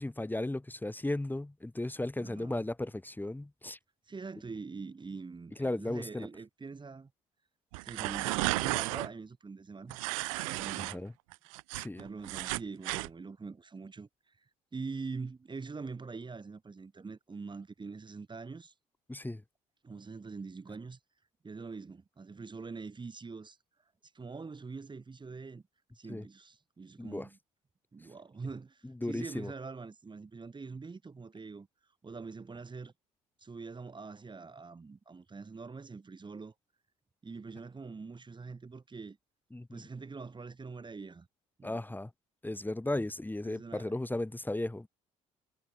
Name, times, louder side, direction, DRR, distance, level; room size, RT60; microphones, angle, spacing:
voice 1, 0.0-3.8 5.6-6.3 10.9-11.1 11.8-12.0 19.1-19.4 26.1-26.2 27.0-27.3 29.0-29.5 39.5-39.8 41.6-42.1 42.4-44.9, left 1 dB, 10° left, 3.1 m, -35 dB
voice 2, 2.2-2.6 4.1-7.1 7.8-10.0 10.2-11.1 11.9-14.4 14.7-18.7 19.8-21.0 21.4-23.6 24.1-25.6 25.9-27.4 27.9-31.7 32.0-32.9 33.4-36.5 37.2-39.2 39.7-41.3 41.6-41.8 43.4-43.9, right 4 dB, 25° right, 3.3 m, -44 dB
sound 1, 7.7-9.1 9.9-10.9 11.3-13.1, right 25 dB, 75° right, 0.9 m, -33 dB
hypercardioid pair, 55°, 17 cm